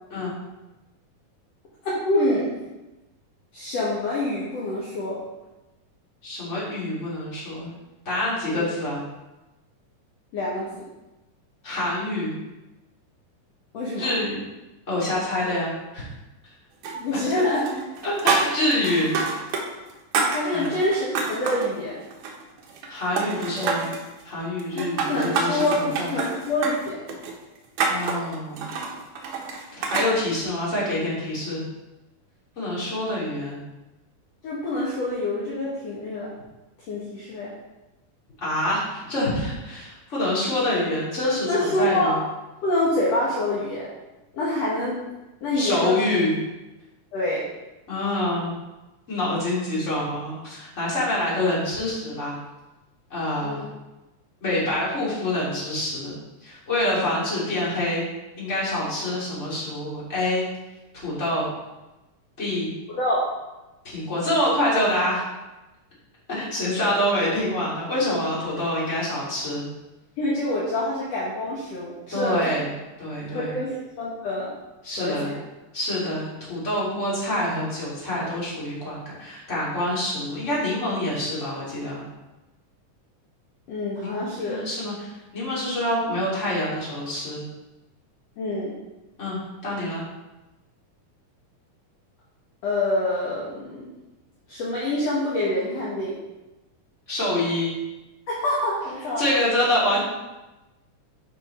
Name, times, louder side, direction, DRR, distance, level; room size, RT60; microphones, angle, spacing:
voice 1, 1.8-2.6 3.5-5.2 8.5-8.7 10.3-10.9 13.7-14.1 16.9-17.8 20.3-22.0 24.7-27.0 34.4-36.3 36.9-37.5 41.5-42.2 42.6-43.9 44.3-45.0 45.4-46.2 47.1-47.5 53.4-53.7 62.9-63.2 70.2-72.5 73.3-74.5 75.0-75.4 83.7-84.6 88.4-88.8 92.6-93.9 94.5-96.2 98.3-99.2, left 1 dB, 60° left, -6 dB, 2.3 m, -26 dB
voice 2, 6.2-7.7 8.0-9.0 11.6-12.3 14.0-14.4 14.9-16.0 17.1-17.2 18.0-19.2 20.5-20.7 22.9-23.9 24.2-26.1 27.9-28.7 29.8-31.6 32.6-33.6 38.4-42.2 45.5-46.4 47.9-48.5 49.1-52.4 53.1-53.6 54.4-56.1 56.4-58.1 58.4-60.4 61.0-61.5 62.4-62.7 63.8-65.2 66.3-69.7 72.1-72.7 73.0-73.5 74.8-75.3 75.7-82.0 84.0-87.4 89.2-90.0 97.1-97.7 99.2-100.0, left 1 dB, 20° left, -7 dB, 3.1 m, -26 dB
sound 1, 16.8-17.4 17.7-19.6 19.9-21.7 22.1-22.9 23.2-24.0 24.6-30.1, right 4 dB, 75° right, 2.7 m, -27 dB
11.0 x 5.4 x 4.3 m, 1.0 s
omnidirectional pair, 3.7 m